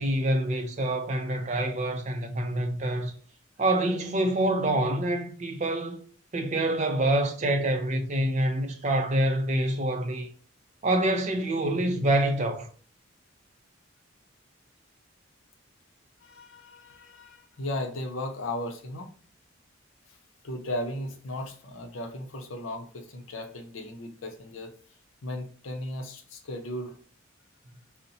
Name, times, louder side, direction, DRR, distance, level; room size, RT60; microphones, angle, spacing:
voice 1, 0.0-3.1 3.6-6.0 6.3-10.3 10.8-12.7, right 1 dB, 35° right, 0.4 m, -26 dB
voice 2, 16.2-19.1 20.4-24.7 25.2-27.0, left 1 dB, 75° left, 0.6 m, -36 dB
3.9 x 2.1 x 2.7 m
head